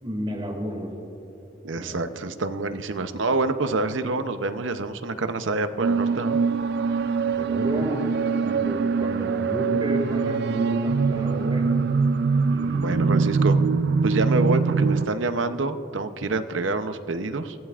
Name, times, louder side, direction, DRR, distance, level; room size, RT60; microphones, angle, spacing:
voice 1, 0.0-0.9 1.8-2.0 6.9-8.1 8.4-11.8 12.5-13.1, equal, 25° right, 0 dB, 2.1 m, -31 dB
voice 2, 1.6-6.4 12.7-13.6 14.0-17.6, right 3 dB, 75° right, 10 dB, 0.7 m, -27 dB
sound 1, 5.8-15.1, right 4 dB, 55° right, 0.4 m, -23 dB
23.5 x 16.0 x 2.5 m, 2.9 s
head